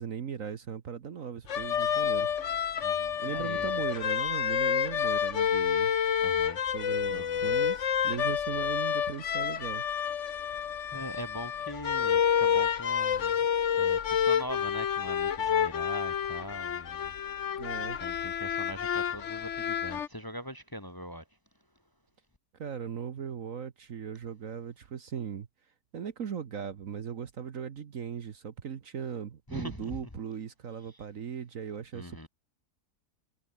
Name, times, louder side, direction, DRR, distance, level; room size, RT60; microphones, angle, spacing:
voice 1, 0.0-2.3 3.2-5.9 6.7-9.8 17.6-18.0 22.6-25.5 25.9-32.3, right 7 dB, 55° right, 1.5 m, -38 dB
sound 1, 1.5-20.1, left 8 dB, 50° left, 1.2 m, -29 dB
voice 2, 2.8-3.8 6.2-6.6 7.1-7.7 10.9-13.3 13.7-17.1 18.0-21.2 29.5-29.9 31.9-32.3, equal, 15° left, 1.7 m, -42 dB
omnidirectional pair, 1.7 m